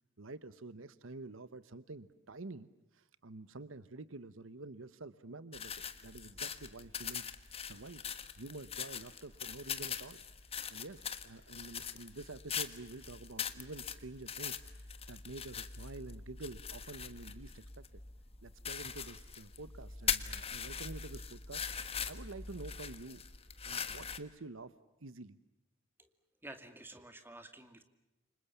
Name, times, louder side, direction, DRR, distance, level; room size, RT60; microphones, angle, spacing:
voice 1, 0.2-5.7 6.0-7.3 7.6-8.0 8.4-10.2 10.7-18.0 18.4-21.7 22.0-23.2 23.6-24.7 25.0-25.4, right 3 dB, 70° right, 15 dB, 1.0 m, -48 dB
sound 1, 5.5-24.2, left 7 dB, 30° left, 1.4 m, -42 dB
voice 2, 26.4-27.8, right 1 dB, 10° right, 8 dB, 2.3 m, -51 dB
29.0 x 26.0 x 7.1 m, 0.95 s
head